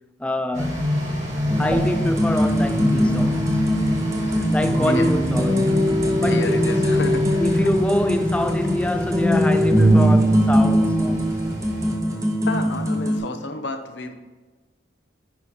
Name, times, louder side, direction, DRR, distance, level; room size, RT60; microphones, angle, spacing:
voice 1, 0.2-0.8 1.6-3.6 4.4-5.8 6.2-7.0 7.4-11.3, left 1 dB, 5° left, 0.3 m, -25 dB
sound 1, 0.5-11.9, left 1 dB, 40° right, 2.0 m, -28 dB
sound 2, 1.5-13.2, equal, 15° right, 0.9 m, -21 dB
voice 2, 6.2-7.7 12.1-14.1, left 3 dB, 65° left, 0.8 m, -31 dB
9.5 x 5.7 x 3.2 m
head